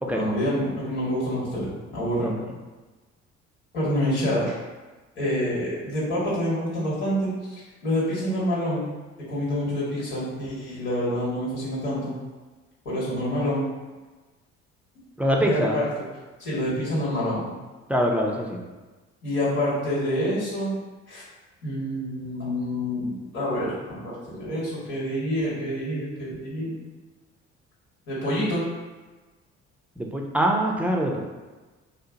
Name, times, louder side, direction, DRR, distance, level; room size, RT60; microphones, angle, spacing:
voice 1, 0.1-2.4 3.7-4.5 5.1-8.8 9.3-12.1 12.8-13.6 15.4-15.9 16.4-17.5 19.2-20.7 21.1-21.2 21.6-26.7 28.1-28.6, equal, 75° left, -7 dB, 1.4 m, -27 dB
voice 2, 15.2-15.8 17.9-18.6 30.0-31.2, equal, 5° right, 0 dB, 0.4 m, -24 dB
2.7 x 2.1 x 3.7 m, 1.2 s
hypercardioid pair, 55°, 35 cm